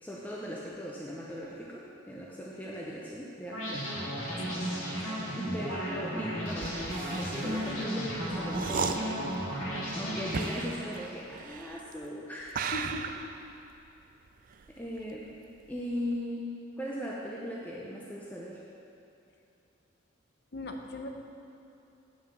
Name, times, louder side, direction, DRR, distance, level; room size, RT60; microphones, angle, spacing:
voice 1, 0.0-3.9 5.3-6.8 7.1-9.2 10.0-12.6 14.8-15.3 15.7-18.6, equal, 10° left, -5 dB, 0.7 m, -39 dB
sound 1, 3.5-11.2, equal, 85° left, 2.0 m, -34 dB
sound 2, 6.5-12.0 12.5-15.4 15.7-16.1, right 5 dB, 45° right, 0.3 m, -37 dB
voice 2, 12.7-13.2 20.5-21.2, left 1 dB, 50° left, 3 dB, 0.8 m, -38 dB
9.0 x 5.3 x 6.9 m, 2.8 s
head